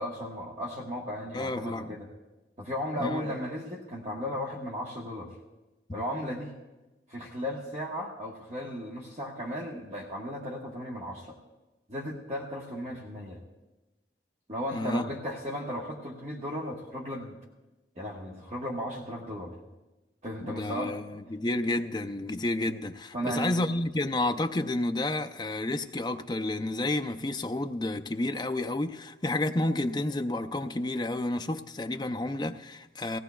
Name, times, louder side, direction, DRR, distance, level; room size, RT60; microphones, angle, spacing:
voice 1, 0.0-2.1 2.6-5.3 5.9-6.5 7.1-11.4 11.9-13.4 14.5-17.3 18.0-19.6 20.2-20.9 23.1-23.6, equal, 40° right, 1.2 m, -35 dB
voice 2, 1.3-2.0 3.0-3.2 14.7-15.1 20.4-33.2, left 2 dB, 25° left, 0.4 m, -30 dB
19.0 x 16.5 x 2.3 m
head